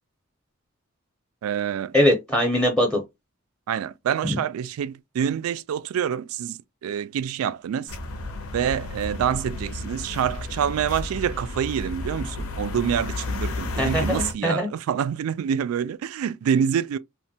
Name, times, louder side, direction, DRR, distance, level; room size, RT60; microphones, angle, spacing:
voice 1, 1.4-1.9 3.7-7.9 8.5-17.0, right 8 dB, 85° right, 0.3 m, -26 dB
voice 2, 1.9-3.0 4.3-4.4 13.8-14.7, equal, 5° left, 0.6 m, -21 dB
sound 1, 7.9-14.3, left 2 dB, 85° left, 0.6 m, -32 dB
3.1 x 2.1 x 2.6 m
head